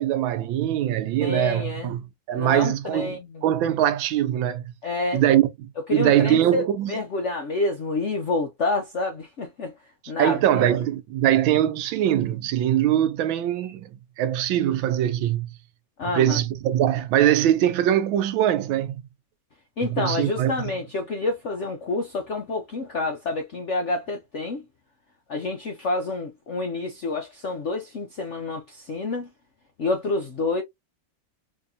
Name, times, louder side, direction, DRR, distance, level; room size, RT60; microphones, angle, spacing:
voice 1, 0.0-4.6 5.1-6.9 10.2-13.9 14.2-15.6 16.1-18.9 19.9-20.5, right 11 dB, 85° right, 1.4 m, -22 dB
voice 2, 1.2-2.0 2.3-3.4 4.8-5.2 5.9-9.7 10.1-10.8 16.0-16.4 19.8-24.6 25.3-29.3 29.8-30.6, left 3 dB, 65° left, 0.7 m, -28 dB
4.2 x 2.8 x 2.5 m
omnidirectional pair, 2.1 m